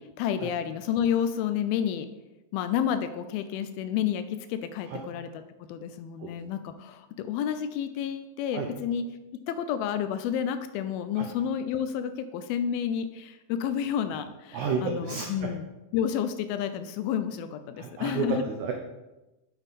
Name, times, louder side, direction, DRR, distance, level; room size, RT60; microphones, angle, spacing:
voice 1, 0.0-2.1 2.5-5.4 5.7-9.0 9.5-15.7 15.9-18.4, left 9 dB, 80° left, 10 dB, 2.3 m, -30 dB
voice 2, 14.5-15.5 17.8-18.7, right 5 dB, 85° right, 2 dB, 1.6 m, -31 dB
9.0 x 6.9 x 4.1 m, 1.0 s
omnidirectional pair, 4.5 m